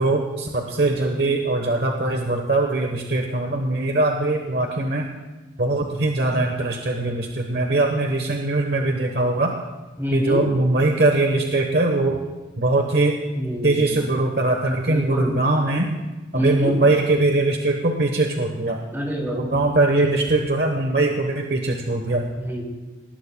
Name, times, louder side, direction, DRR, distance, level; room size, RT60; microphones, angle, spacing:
voice 1, 0.0-5.1 5.6-9.5 10.1-12.2 12.6-13.2 13.6-15.9 16.3-18.8 19.3-22.2, right 2 dB, 60° right, 2 dB, 1.1 m, -21 dB
voice 2, 10.0-10.5 13.3-13.9 14.7-15.4 16.3-16.8 18.9-19.4 22.4-22.6, equal, 15° right, -1 dB, 2.9 m, -26 dB
23.0 x 19.0 x 2.3 m, 1.2 s
head